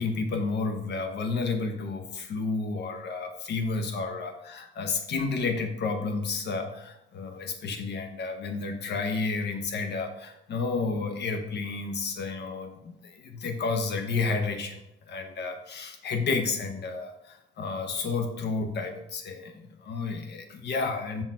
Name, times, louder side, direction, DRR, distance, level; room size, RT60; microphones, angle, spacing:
voice 1, 0.0-14.8 15.1-21.2, left 4 dB, 55° left, 6 dB, 0.9 m, -31 dB
5.7 x 4.2 x 4.3 m, 0.83 s
cardioid pair, 170°, 20 cm